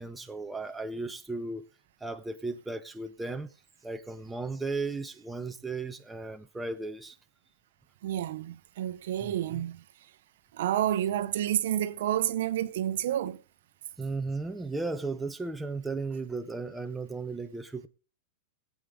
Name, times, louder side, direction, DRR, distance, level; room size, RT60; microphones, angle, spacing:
voice 1, 0.0-1.6 2.0-3.5 3.8-7.2 9.2-9.6 14.0-17.9, right 3 dB, 5° right, 0.6 m, -35 dB
voice 2, 8.0-9.8 10.5-13.4, right 11 dB, 65° right, 0.8 m, -29 dB
20.5 x 8.4 x 3.6 m
supercardioid pair, 165°, 0 cm